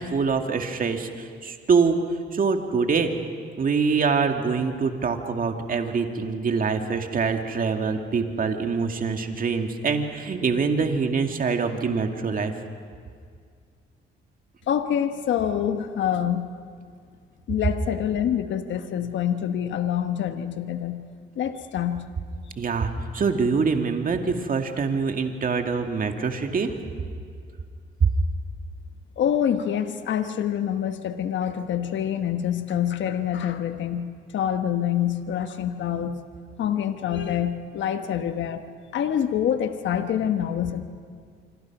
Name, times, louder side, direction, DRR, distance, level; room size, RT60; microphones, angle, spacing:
voice 1, 0.0-2.0 2.3-3.1 3.6-12.5 22.6-26.7 28.0-28.1, right 5 dB, 45° right, 5 dB, 2.3 m, -24 dB
voice 2, 14.7-16.5 17.5-21.0 21.4-22.0 29.2-36.2 36.6-38.6 38.9-40.8, left 9 dB, 70° left, 8 dB, 1.3 m, -26 dB
26.0 x 25.5 x 6.1 m, 2.1 s
cardioid pair, 90°, 20 cm